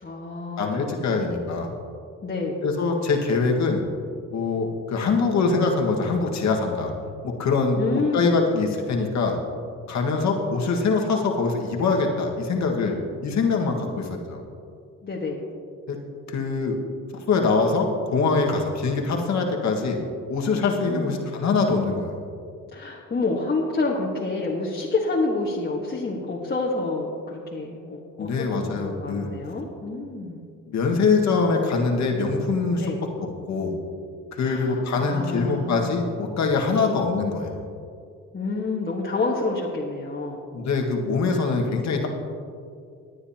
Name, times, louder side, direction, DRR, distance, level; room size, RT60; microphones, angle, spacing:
voice 1, 0.0-1.0 2.2-2.6 7.7-8.5 15.0-15.4 20.9-21.1 22.7-30.4 32.8-33.0 34.4-36.0 36.7-36.9 38.3-40.4, left 3 dB, 35° left, -4 dB, 1.5 m, -28 dB
voice 2, 0.6-1.7 2.6-3.8 4.3-6.9 7.2-9.4 9.9-12.9 13.2-14.4 15.9-16.0 16.3-16.8 17.3-20.0 20.3-22.2 28.2-29.3 30.7-32.9 33.2-33.8 34.3-37.6 40.5-42.1, left 4 dB, 65° left, 1 dB, 1.7 m, -23 dB
18.5 x 9.7 x 2.9 m, 2.3 s
cardioid pair, 90°, 30 cm